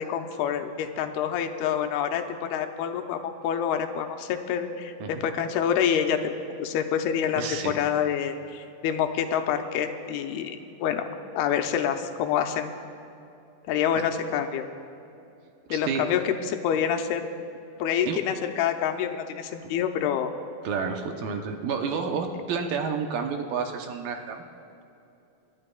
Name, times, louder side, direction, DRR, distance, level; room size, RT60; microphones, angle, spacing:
voice 1, 0.0-11.0 11.3-12.7 13.7-14.7 15.7-17.3 17.8-20.3, left 8 dB, 90° left, 6 dB, 2.7 m, -27 dB
voice 2, 7.4-7.7 15.7-16.0 18.0-18.2 20.6-24.4, right 5 dB, 75° right, 4 dB, 2.5 m, -30 dB
29.0 x 12.0 x 2.3 m, 2.7 s
omnidirectional pair, 4.5 m